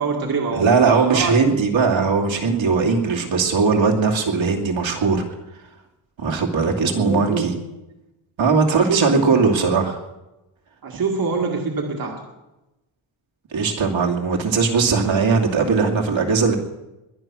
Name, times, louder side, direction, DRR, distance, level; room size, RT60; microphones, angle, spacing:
voice 1, 0.0-1.7 6.8-7.6 8.7-9.3 10.8-12.3, right 4 dB, 45° right, 1 dB, 2.0 m, -25 dB
voice 2, 0.5-5.2 6.2-7.5 8.4-10.0 13.5-16.6, right 4 dB, 70° right, 1 dB, 2.6 m, -19 dB
21.5 x 10.0 x 6.2 m, 0.99 s
wide cardioid pair, 150°, 48 cm